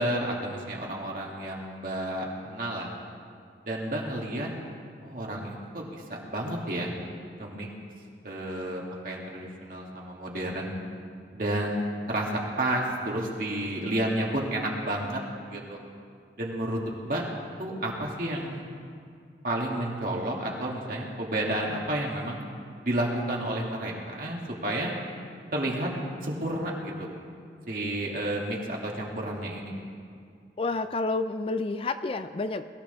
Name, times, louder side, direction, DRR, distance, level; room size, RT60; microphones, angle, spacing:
voice 1, 0.0-2.9 3.6-4.5 5.0-6.9 7.4-7.7 8.2-10.8 11.3-12.3 12.6-15.2 15.5-15.8 16.4-17.2 17.6-18.7 19.4-22.5 22.8-24.9 25.5-25.9 26.2-27.1 27.7-29.7, right 1 dB, 50° right, -2 dB, 2.4 m, -31 dB
voice 2, 30.6-32.7, left 3 dB, 30° left, 10 dB, 0.4 m, -29 dB
22.0 x 14.5 x 3.5 m, 2.2 s
head